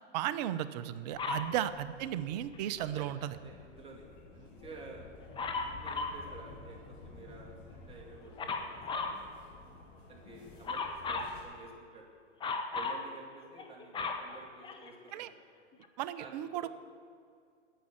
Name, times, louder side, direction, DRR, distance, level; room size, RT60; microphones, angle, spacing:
voice 1, 0.1-3.4 15.1-15.3 16.0-16.7, right 11 dB, 35° right, 14 dB, 0.5 m, -35 dB
sound 1, 1.1-11.4, left 2 dB, 45° left, 3.4 m, -53 dB
Dog, 1.2-1.5 5.4-6.2 8.4-9.2 10.6-11.4 12.4-13.0 13.6-15.1 15.8-15.9, left 4 dB, 15° left, 0.9 m, -36 dB
voice 2, 1.2-1.5 2.8-5.1 5.6-6.8 7.0-9.6 10.1-12.1 12.7-15.3 16.2-16.7, right 3 dB, 15° right, -1 dB, 2.4 m, -52 dB
10.0 x 8.4 x 9.5 m, 2.3 s
hypercardioid pair, 125°, 37 cm